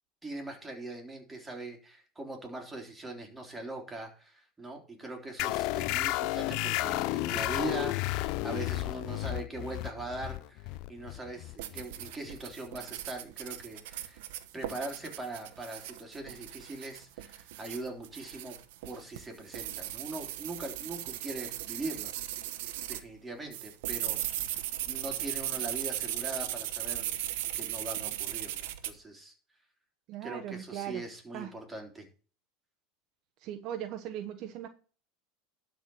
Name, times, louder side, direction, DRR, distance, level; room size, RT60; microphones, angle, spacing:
voice 1, 0.2-14.3 14.5-18.6 18.8-22.2 22.9-24.2 24.9-29.3 30.2-32.1, right 2 dB, 10° right, 3.3 m, -41 dB
sound 1, 5.4-12.5, left 19 dB, 60° left, 0.4 m, -32 dB
sound 2, 11.6-23.0 23.5-28.9, right 13 dB, 75° right, 1.1 m, -37 dB
voice 2, 30.1-31.0 31.3-31.5 33.4-34.7, right 11 dB, 50° right, 1.1 m, -38 dB
12.0 x 4.7 x 7.1 m
supercardioid pair, 125°, 0 cm